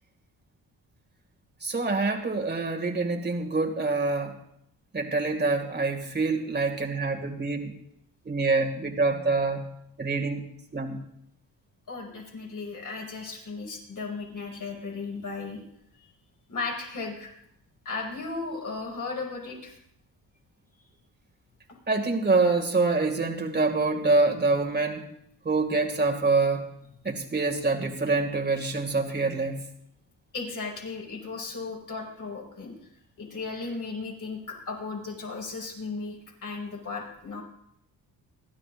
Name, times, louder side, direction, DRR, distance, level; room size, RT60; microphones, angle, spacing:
voice 1, 1.6-4.3 4.9-7.7 8.3-9.6 10.0-10.4 10.7-11.0 21.9-25.0 25.4-26.6 27.0-29.6, right 3 dB, 25° right, 3 dB, 2.3 m, -26 dB
voice 2, 11.9-15.6 16.0-16.1 16.5-17.3 17.8-19.7 30.3-32.7 33.2-36.2 36.4-37.4, left 4 dB, 55° left, -2 dB, 5.9 m, -35 dB
30.0 x 12.0 x 2.6 m, 0.73 s
cardioid pair, 105°, 39 cm